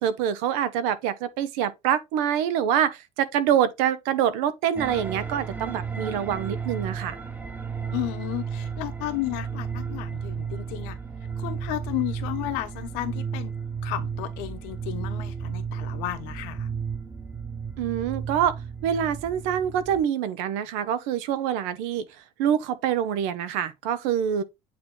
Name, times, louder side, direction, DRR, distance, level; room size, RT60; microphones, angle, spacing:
voice 1, 0.0-7.2 17.8-18.6 18.8-22.1 22.4-24.4, right 9 dB, 85° right, 0.9 m, -25 dB
sound 1, 4.8-20.0, right 6 dB, 10° right, 0.8 m, -33 dB
voice 2, 7.9-11.0 11.4-13.5 13.8-16.7, left 16 dB, 90° left, 1.0 m, -33 dB
8.5 x 3.0 x 3.8 m
cardioid pair, 150°, 14 cm